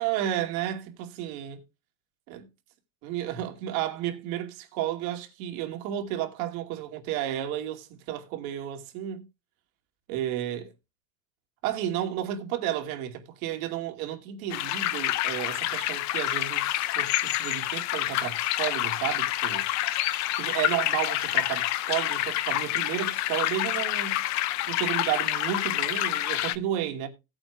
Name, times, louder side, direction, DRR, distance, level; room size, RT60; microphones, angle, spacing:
voice 1, 0.0-1.6 2.3-2.5 3.0-9.3 10.1-10.7 11.6-19.7 20.4-24.2 24.7-27.1, right 11 dB, 75° right, 2.5 m, -32 dB
sound 1, 14.5-26.6, left 15 dB, 40° left, 0.6 m, -28 dB
17.5 x 8.9 x 2.3 m
supercardioid pair, 135°, 42 cm